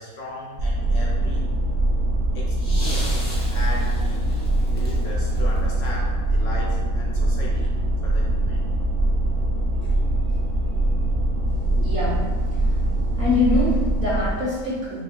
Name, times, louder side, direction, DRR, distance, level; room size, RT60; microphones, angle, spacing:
voice 1, 0.0-1.4 2.3-7.7 8.0-8.6 9.8-10.0, left 2 dB, 70° left, -3 dB, 0.9 m, -37 dB
sound 1, 0.6-14.3, right 1 dB, 80° right, 1.1 m, -22 dB
sound 2, 2.5-6.5 7.6-7.7, left 1 dB, 15° left, 0.8 m, -38 dB
voice 2, 11.7-12.2 12.6-12.8 13.2-15.0, left 2 dB, 30° right, -9 dB, 1.5 m, -24 dB
6.4 x 2.3 x 2.3 m, 1.4 s
omnidirectional pair, 1.5 m